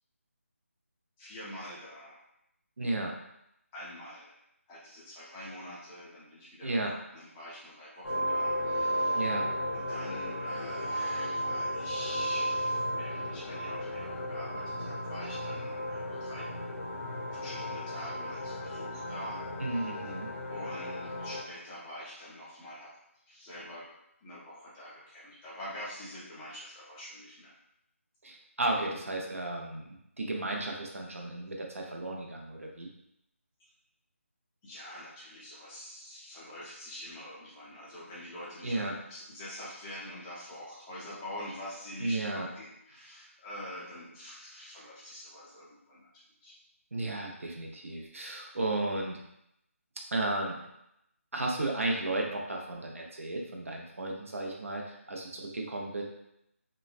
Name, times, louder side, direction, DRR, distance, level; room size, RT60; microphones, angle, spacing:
voice 1, 1.2-2.2 3.7-4.3 4.7-6.8 7.1-9.3 9.7-16.5 17.3-19.9 20.5-22.9 23.3-23.9 24.2-27.5 34.6-46.5, left 1 dB, 10° left, -8 dB, 0.4 m, -45 dB
voice 2, 2.8-3.1 6.6-6.9 9.1-9.5 19.6-20.3 28.2-32.9 38.6-38.9 42.0-42.5 46.9-49.2 50.1-50.7 51.3-56.0, right 2 dB, 70° right, 0 dB, 0.6 m, -34 dB
sound 1, 8.0-21.4, equal, 70° left, 0.6 m, -34 dB
3.1 x 2.1 x 2.4 m, 0.81 s
figure-of-eight pair, 160°, 8 cm